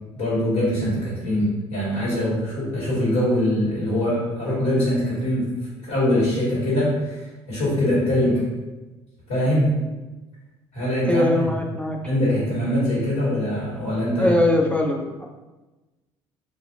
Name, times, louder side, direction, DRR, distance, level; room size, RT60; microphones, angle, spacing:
voice 1, 0.1-5.5 5.8-8.5 9.3-9.8 10.7-11.5 12.0-14.3, left 1 dB, 75° left, -11 dB, 1.5 m, -23 dB
voice 2, 11.0-12.0 14.2-15.3, left 1 dB, 10° left, 1 dB, 0.3 m, -21 dB
2.6 x 2.4 x 2.8 m, 1.1 s
hypercardioid pair, 65°, 15 cm